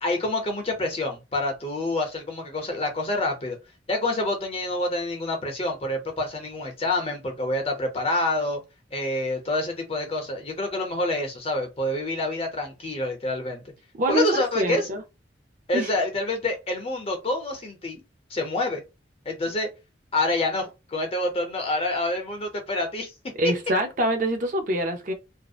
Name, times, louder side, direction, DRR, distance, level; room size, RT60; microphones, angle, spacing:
voice 1, 0.0-3.6 3.9-8.6 8.9-13.6 14.1-14.9 15.7-18.0 18.3-18.8 19.3-19.7 20.1-23.1, left 2 dB, 35° left, 0.6 m, -27 dB
voice 2, 14.0-15.0 15.7-15.9 23.4-25.1, right 1 dB, 45° right, 0.5 m, -25 dB
2.6 x 2.0 x 2.3 m
head